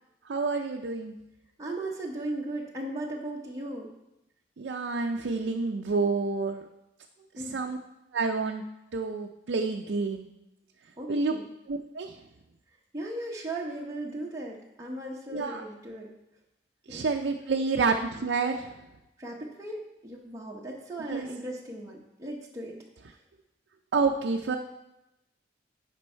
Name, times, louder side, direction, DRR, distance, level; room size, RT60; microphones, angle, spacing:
voice 1, 0.3-1.1 4.6-6.6 7.3-7.8 8.1-8.6 8.9-10.3 11.1-11.4 11.7-12.2 15.3-15.6 16.9-18.7 21.1-21.3 23.9-24.6, right 4 dB, 75° right, 3 dB, 0.5 m, -28 dB
voice 2, 1.6-3.9 7.4-7.6 11.0-11.5 12.9-16.1 16.9-17.0 19.2-22.8, right 1 dB, 20° right, -3 dB, 0.9 m, -37 dB
9.4 x 5.3 x 4.4 m, 0.93 s
head